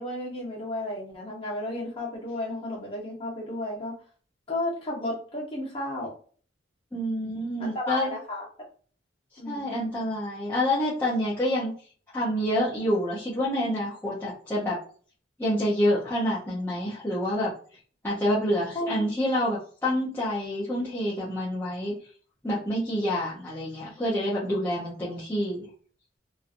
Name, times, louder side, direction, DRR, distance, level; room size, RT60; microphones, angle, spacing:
voice 1, 0.0-3.9 4.5-6.1 7.6-8.5 9.4-9.7 18.7-19.0, left 1 dB, 30° left, -4 dB, 1.3 m, -33 dB
voice 2, 6.9-8.1 9.5-11.7 12.1-14.8 15.4-17.5 18.0-21.9 22.4-25.7, equal, 10° left, -10 dB, 0.8 m, -27 dB
3.1 x 2.7 x 2.5 m, 0.43 s
head